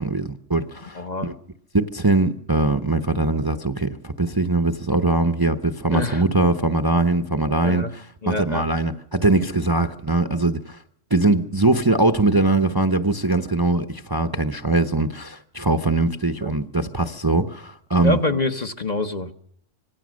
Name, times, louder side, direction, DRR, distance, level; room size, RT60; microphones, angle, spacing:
voice 1, 0.0-1.3 1.7-10.8 11.1-18.2, right 2 dB, 20° right, 0.8 m, -21 dB
voice 2, 0.9-1.3 5.9-6.2 7.6-7.9 8.2-8.6 16.4-16.5 18.0-19.3, left 2 dB, 35° left, 1.1 m, -25 dB
25.5 x 17.5 x 6.4 m
omnidirectional pair, 1.3 m